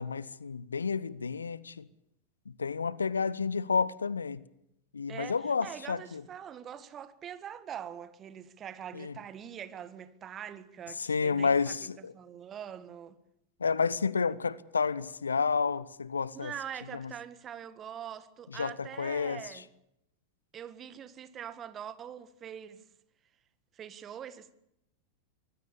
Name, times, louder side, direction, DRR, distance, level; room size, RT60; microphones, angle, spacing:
voice 1, 0.0-1.9 2.6-4.4 4.9-6.2 8.9-9.1 11.0-12.1 13.6-16.5 16.9-17.1 18.6-19.4, left 5 dB, 75° left, 0.9 m, -30 dB
voice 2, 5.1-13.2 16.3-19.7 20.5-22.8 23.7-24.5, right 9 dB, 25° right, 1.7 m, -43 dB
24.5 x 20.0 x 7.2 m
figure-of-eight pair, 90°, 0 cm